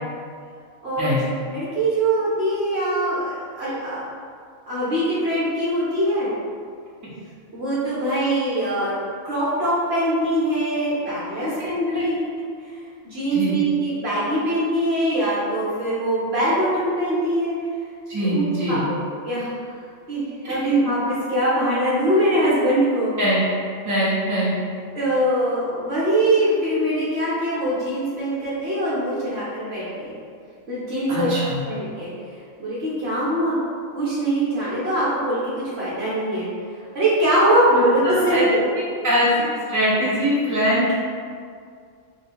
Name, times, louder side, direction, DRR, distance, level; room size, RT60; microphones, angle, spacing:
voice 1, 0.8-4.0 4.7-6.3 7.5-9.0 9.2-12.2 13.0-17.5 18.2-18.8 19.2-19.5 20.1-23.1 24.9-30.1 30.7-31.3 31.7-32.1 32.6-33.6 33.9-36.5 36.9-38.4, right 1 dB, 55° right, -9 dB, 1.2 m, -22 dB
voice 2, 18.1-18.8 20.4-20.5 23.2-23.4 23.8-24.5 31.1-31.6 38.0-38.5 39.0-40.9, equal, 15° right, -10 dB, 1.0 m, -22 dB
3.7 x 2.3 x 4.3 m, 2.2 s
omnidirectional pair, 1.4 m